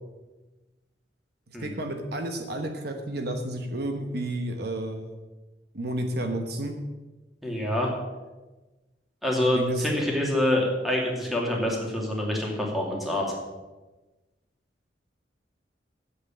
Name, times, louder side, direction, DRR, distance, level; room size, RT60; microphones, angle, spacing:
voice 1, 1.6-5.2 5.7-6.7 9.5-9.9, right 1 dB, 60° right, 5 dB, 1.2 m, -31 dB
voice 2, 7.4-7.9 9.2-13.3, left 1 dB, ahead, -2 dB, 2.6 m, -26 dB
8.5 x 8.3 x 8.6 m, 1.2 s
head